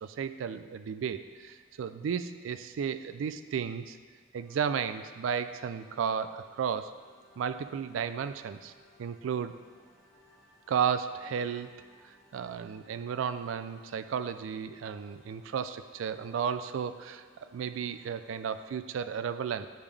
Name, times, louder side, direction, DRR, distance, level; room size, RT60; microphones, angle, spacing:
voice 1, 0.0-4.0 4.3-6.9 7.4-8.7 9.0-9.5 10.7-11.7 12.0-19.7, right 7 dB, 80° right, 11 dB, 0.3 m, -33 dB
sound 1, 4.4-18.7, equal, ahead, 1.4 m, -62 dB
10.0 x 3.6 x 3.3 m, 1.5 s
head